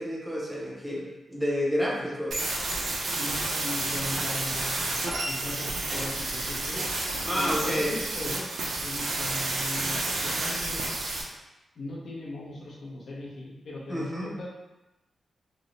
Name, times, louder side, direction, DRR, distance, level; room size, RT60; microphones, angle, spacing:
voice 1, 0.0-2.4 7.2-8.0 13.9-14.3, equal, 5° right, -5 dB, 0.6 m, -29 dB
sound 1, 2.3-11.2, right 2 dB, 75° right, 0.6 m, -30 dB
voice 2, 3.1-6.9 7.3-10.9 11.8-14.5, left 1 dB, 60° left, -4 dB, 0.7 m, -39 dB
3.0 x 2.0 x 3.8 m, 1.0 s
wide cardioid pair, 170°, 0 cm